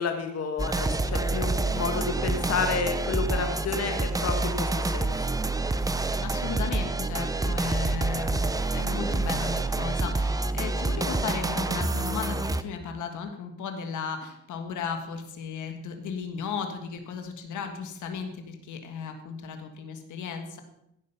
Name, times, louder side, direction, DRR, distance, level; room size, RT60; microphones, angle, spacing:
voice 1, 0.0-5.3, left 5 dB, 55° left, 5 dB, 1.5 m, -30 dB
sound 1, 0.6-12.6, right 3 dB, 10° right, 0.6 m, -27 dB
voice 2, 6.2-20.6, left 6 dB, 75° left, 6 dB, 1.7 m, -35 dB
16.0 x 6.3 x 5.6 m, 0.80 s
cardioid pair, 90°, 30 cm